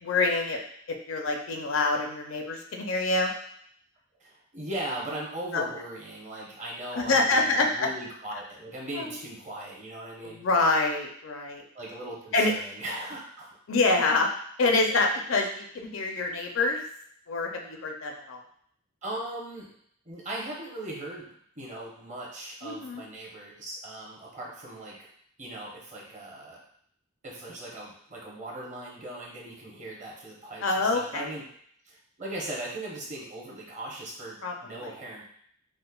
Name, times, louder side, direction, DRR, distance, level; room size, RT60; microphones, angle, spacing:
voice 1, 0.0-0.6 1.1-3.3 5.5-5.6 6.9-7.9 9.0-9.1 10.2-11.6 12.3-12.5 13.7-14.3 14.6-16.8 17.3-18.4 22.6-23.0 30.6-31.3 34.4-34.9, left 3 dB, 70° left, 2 dB, 0.5 m, -26 dB
voice 2, 4.2-10.4 11.7-13.5 14.6-15.0 19.0-19.7 20.0-21.3 21.6-25.1 25.4-26.6 27.2-31.4 31.8-35.2, right 1 dB, 35° right, -4 dB, 0.9 m, -39 dB
4.9 x 2.1 x 2.3 m, 0.64 s
head